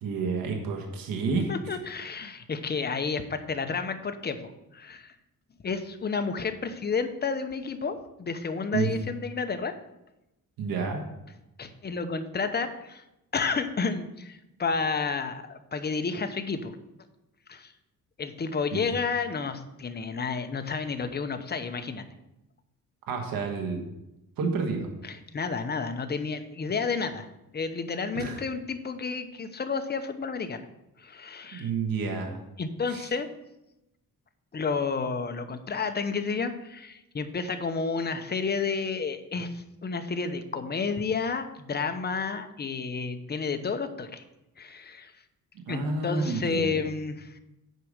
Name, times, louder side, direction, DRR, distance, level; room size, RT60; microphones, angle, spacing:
voice 1, 0.0-1.5 8.7-8.9 10.6-11.0 18.7-18.8 23.1-23.8 24.4-24.9 28.1-28.4 31.5-32.4 32.9-33.1 45.7-46.7, right 4 dB, 85° right, 3 dB, 1.5 m, -29 dB
voice 2, 1.5-5.1 5.6-9.7 11.6-13.0 13.3-16.7 17.5-17.7 18.2-22.0 25.0-27.3 27.5-30.7 31.0-31.7 32.6-33.3 34.5-44.2 44.6-45.1 45.7-47.4, left 5 dB, 30° left, 8 dB, 0.9 m, -31 dB
9.2 x 4.9 x 6.4 m, 0.91 s
cardioid pair, 110°, 34 cm